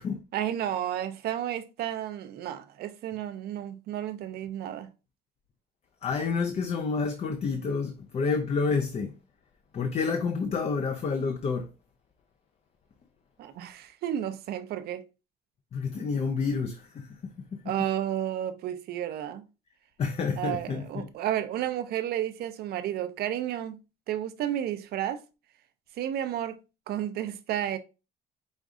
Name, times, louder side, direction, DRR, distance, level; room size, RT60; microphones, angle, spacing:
voice 1, 0.3-4.9 13.4-15.0 17.7-19.5 20.4-23.8 24.1-25.2 26.0-26.6 26.9-27.8, right 11 dB, 70° right, 0.7 m, -32 dB
voice 2, 6.0-9.2 9.7-11.7 15.7-17.7 20.0-21.1, left 5 dB, 40° left, 0.6 m, -29 dB
5.2 x 2.5 x 3.6 m
cardioid pair, 110°, 17 cm